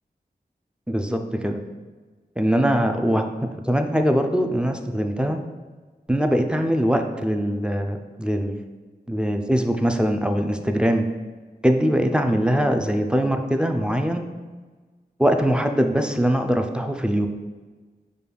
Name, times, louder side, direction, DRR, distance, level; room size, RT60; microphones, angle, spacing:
voice 1, 0.9-1.6 2.4-5.4 6.1-8.6 9.1-11.1 11.6-14.3 15.2-17.3, equal, 5° right, 5 dB, 0.4 m, -22 dB
5.2 x 2.3 x 3.4 m, 1.4 s
cardioid pair, 40°, 17 cm